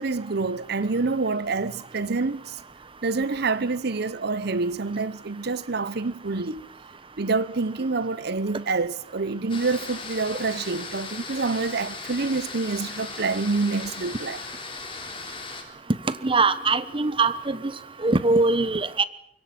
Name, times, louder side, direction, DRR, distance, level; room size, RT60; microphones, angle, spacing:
voice 1, 0.0-2.6 3.0-6.6 7.2-14.4, right 3 dB, 60° right, 0.9 m, -27 dB
sound 1, 9.5-15.6, left 4 dB, 30° left, 3.5 m, -37 dB
voice 2, 16.2-17.7 18.0-19.0, right 3 dB, 30° right, 1.1 m, -22 dB
25.0 x 22.5 x 6.0 m
head